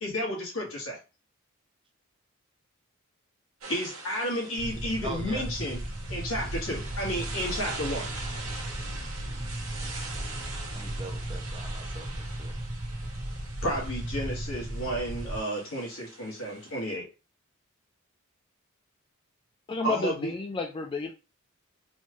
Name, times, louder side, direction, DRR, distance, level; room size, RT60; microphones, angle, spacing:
voice 1, 0.0-1.0 3.7-5.8 6.1-8.1 13.6-17.1 19.8-20.3, equal, 70° left, -2 dB, 1.6 m, -32 dB
sound 1, 3.6-16.9, right 3 dB, 80° right, 1.0 m, -43 dB
sound 2, 4.6-15.4, right 1 dB, 50° right, 0.9 m, -36 dB
voice 2, 5.0-5.5 9.8-10.3 10.7-12.6, right 1 dB, 25° right, 5 dB, 0.5 m, -42 dB
voice 3, 19.7-21.1, left 4 dB, 25° left, 3 dB, 0.3 m, -31 dB
4.2 x 2.3 x 3.0 m, 0.30 s
head